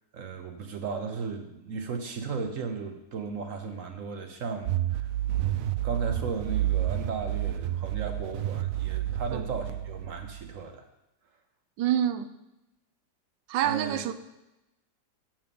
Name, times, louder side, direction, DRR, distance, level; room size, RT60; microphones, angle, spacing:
voice 1, 0.1-10.8 13.6-14.0, right 5 dB, 55° right, 1.1 m, -36 dB
sound 1, 4.7-10.5, right 13 dB, 70° right, 0.8 m, -30 dB
voice 2, 11.8-12.3 13.5-14.1, right 11 dB, 90° right, 1.3 m, -26 dB
8.0 x 5.9 x 6.9 m
omnidirectional pair, 1.9 m